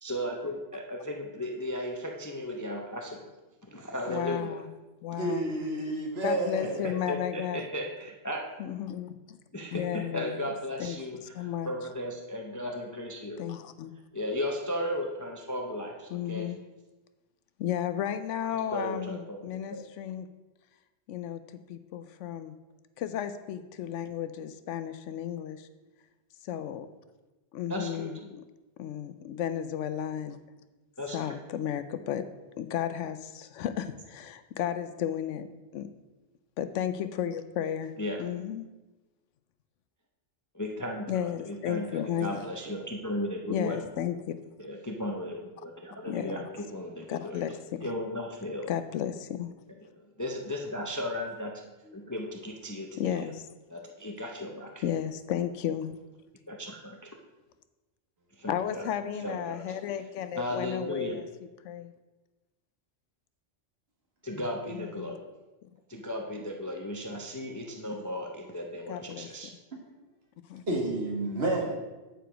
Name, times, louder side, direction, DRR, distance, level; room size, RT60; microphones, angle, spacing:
voice 1, 0.0-3.2 3.7-4.5 6.8-8.4 9.5-13.4 14.1-16.5 18.7-19.4 19.7-19.8 27.7-28.1 31.0-31.3 38.0-38.2 40.5-43.8 44.6-46.4 46.7-47.4 47.8-48.7 50.2-51.5 51.9-53.2 53.7-54.8 56.5-57.0 58.4-58.8 59.2-59.6 60.4-61.2 64.2-65.3 65.9-69.5, left 1 dB, 20° left, 1 dB, 0.5 m, -35 dB
voice 2, 4.1-4.7 5.0-5.4 6.2-7.6 8.6-9.4 9.7-10.5 10.8-11.7 13.4-13.9 16.1-16.6 17.6-20.3 21.1-22.5 23.0-25.7 26.4-26.9 27.5-28.4 28.8-30.4 31.1-32.2 32.6-35.5 35.7-35.9 36.6-37.9 38.2-38.7 41.1-42.4 43.5-44.3 46.1-46.5 47.1-47.9 48.7-49.5 53.0-53.5 54.8-56.0 58.5-61.3 61.6-61.8 64.7-65.2 68.9-69.3 70.5-70.6, left 10 dB, 80° left, 11 dB, 0.9 m, -33 dB
voice 3, 5.2-7.2 42.3-42.7 51.9-52.0 70.7-71.7, right 1 dB, 60° right, -1 dB, 1.9 m, -31 dB
9.1 x 4.8 x 5.0 m, 1.1 s
omnidirectional pair, 1.2 m